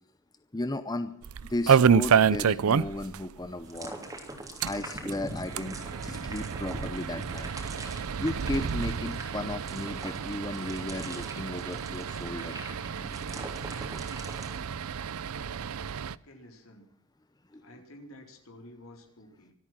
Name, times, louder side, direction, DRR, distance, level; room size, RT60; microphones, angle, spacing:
voice 1, 0.5-1.1 1.5-3.9 4.6-5.8 6.0-7.5 8.2-12.6 17.5-17.6, left 1 dB, 20° left, 10 dB, 0.8 m, -34 dB
sound 1, 1.2-3.2 3.4-3.5 3.8-3.9 4.5-16.1, right 7 dB, 85° right, 0.5 m, -29 dB
sound 2, 3.7-14.6, right 1 dB, 15° right, 3.0 m, -43 dB
voice 2, 16.2-16.9 17.6-19.5, left 1 dB, 75° left, 3 dB, 4.2 m, -51 dB
25.0 x 8.8 x 6.0 m, 0.63 s
head